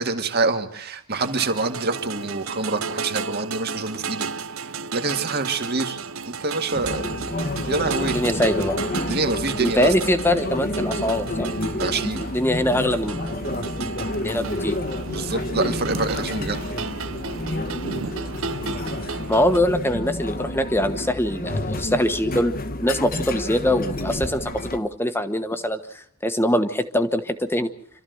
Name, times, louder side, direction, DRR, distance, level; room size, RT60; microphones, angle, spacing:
voice 1, 0.0-4.3 4.9-6.0 6.2-7.0 7.7-8.2 9.1-9.9 11.8-12.2 15.1-16.6, right 3 dB, 45° right, 6 dB, 1.9 m, -26 dB
sound 1, 1.1-19.6, right 5 dB, 65° right, 0.8 m, -33 dB
sound 2, 6.7-24.8, left 1 dB, 40° left, 1.2 m, -29 dB
voice 2, 8.0-8.8 9.6-11.5 12.2-13.2 14.2-14.8 19.3-22.6 22.8-27.7, left 1 dB, 10° left, 9 dB, 1.2 m, -23 dB
27.5 x 13.5 x 8.0 m, 0.66 s
head